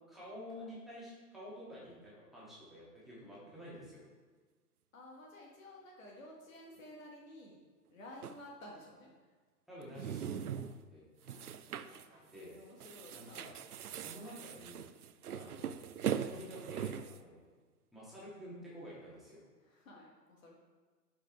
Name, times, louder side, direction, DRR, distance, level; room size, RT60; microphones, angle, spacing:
voice 1, 0.1-4.0 9.7-10.6 10.9-11.0 12.3-12.5 13.1-13.5 13.9-14.8 15.3-15.9 16.1-17.4 17.9-19.4, equal, ahead, -9 dB, 2.5 m, -50 dB
voice 2, 4.9-7.6 7.9-9.1 11.2-12.1 12.3-13.5 15.4-15.6 19.6-20.6, left 1 dB, 50° left, -2 dB, 1.8 m, -53 dB
sound 1, 8.2-8.4 9.8-10.8 11.2-12.1 12.4-12.5 12.8-17.2, right 8 dB, 65° right, 0.6 m, -41 dB
sound 2, 12.1-12.3 12.6-12.7 13.6-13.7 14.2-14.7 15.7-15.8 16.1-16.5, right 1 dB, 20° right, 2.3 m, -64 dB
11.5 x 5.6 x 3.5 m, 1.4 s
figure-of-eight pair, 115°, 50 cm